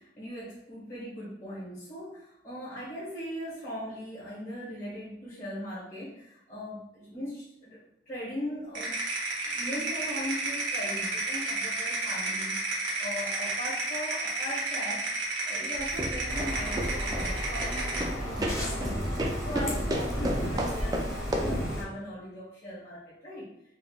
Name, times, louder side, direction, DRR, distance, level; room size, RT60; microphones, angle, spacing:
voice 1, 0.0-8.9 9.4-23.5, equal, 45° left, -9 dB, 1.0 m, -39 dB
sound 1, 8.7-18.1, right 2 dB, 85° right, 0.9 m, -32 dB
sound 2, 15.8-21.7, right 1 dB, 20° right, 0.3 m, -33 dB
sound 3, 16.3-21.8, equal, 15° left, 0.7 m, -33 dB
3.6 x 2.1 x 2.3 m, 0.81 s
head